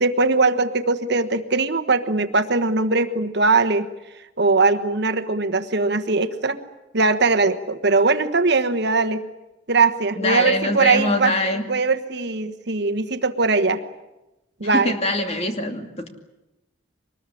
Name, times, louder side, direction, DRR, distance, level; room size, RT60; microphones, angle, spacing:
voice 1, 0.0-3.9 4.4-6.6 6.9-9.2 9.7-11.3 11.7-13.8 14.6-14.9, right 3 dB, 55° right, 9 dB, 1.3 m, -20 dB
voice 2, 10.2-11.7 14.7-16.1, left 1 dB, 30° left, 5 dB, 2.5 m, -23 dB
24.0 x 20.5 x 10.0 m, 0.98 s
head